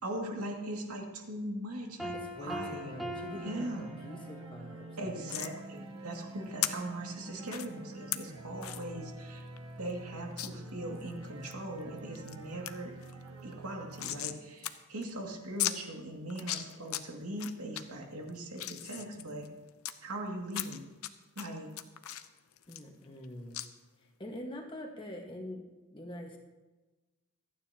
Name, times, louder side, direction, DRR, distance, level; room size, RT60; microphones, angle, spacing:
voice 1, 0.0-2.1 2.4-2.9 3.3-3.9 5.0-9.5 9.8-12.9 13.4-19.5 20.0-20.9 21.4-21.7, right 1 dB, 90° right, 0 dB, 2.3 m, -40 dB
Piano, 2.0-4.5, equal, ahead, 1.2 m, -41 dB
voice 2, 2.1-5.3 22.7-23.6 24.0-25.6 25.9-26.4, left 1 dB, 20° left, 1 dB, 1.5 m, -44 dB
sound 1, 2.3-14.2, right 2 dB, 70° right, 1.4 m, -47 dB
sound 2, 5.3-5.5 6.6-6.7 7.5-7.7 8.1-8.2 8.6-8.8 9.2-9.3 9.6-9.7 10.4-10.5 11.0-11.5 12.0-12.4 12.7-12.8 13.0-14.4 14.6-14.7 15.0-15.1 15.6-15.8 16.3-17.0 17.4-17.8 18.3-19.9 20.5-21.1 21.4-23.3 23.5-23.7, left 13 dB, 75° left, 0.7 m, -36 dB
26.5 x 9.7 x 2.9 m, 1.2 s
head